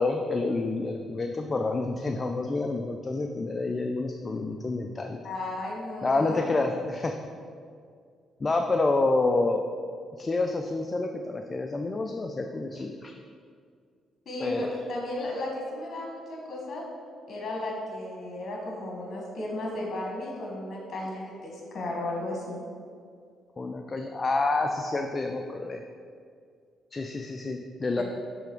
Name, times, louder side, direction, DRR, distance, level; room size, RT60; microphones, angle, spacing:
voice 1, 0.0-5.2 6.0-7.2 8.4-9.6 10.2-13.1 14.4-14.7 23.6-25.8 26.9-28.0, left 3 dB, 30° left, 4 dB, 0.4 m, -28 dB
voice 2, 5.2-6.6 14.2-16.8 17.3-22.6 28.0-28.1, left 1 dB, 50° left, -2 dB, 1.4 m, -34 dB
6.9 x 3.4 x 4.6 m, 2.2 s
cardioid pair, 90°, 0 cm